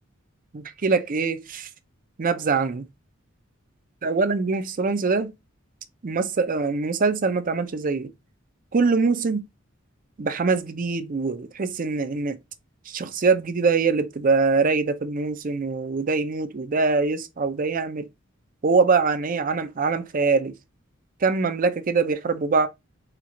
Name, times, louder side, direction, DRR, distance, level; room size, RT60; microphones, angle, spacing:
voice 1, 0.5-1.7 2.2-2.9 4.0-5.3 6.0-8.1 8.7-9.5 10.2-12.4 12.9-18.1 18.6-20.5 21.2-22.7, right 4 dB, 40° right, 0.5 m, -23 dB
4.5 x 2.4 x 3.8 m
head